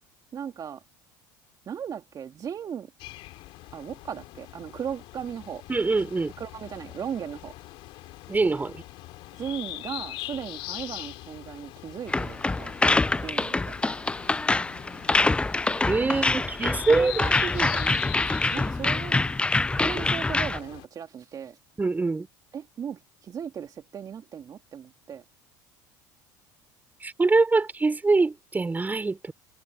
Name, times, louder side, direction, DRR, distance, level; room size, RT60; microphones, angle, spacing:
voice 1, 0.3-0.8 1.7-2.9 3.7-5.6 6.4-7.5 9.4-12.7 13.2-13.7 16.0-16.4 16.9-18.2 18.5-19.3 19.8-21.6 22.5-25.2, right 8 dB, 40° right, 2.2 m, -37 dB
sound 1, 3.0-20.9, left 18 dB, 60° left, 2.8 m, -42 dB
voice 2, 5.7-6.3 8.3-8.8 15.9-17.1 21.8-22.3 27.0-29.3, right 3 dB, 15° right, 3.9 m, -24 dB
sound 2, 12.1-20.6, left 3 dB, 10° left, 0.4 m, -25 dB
hypercardioid pair, 75°, 10 cm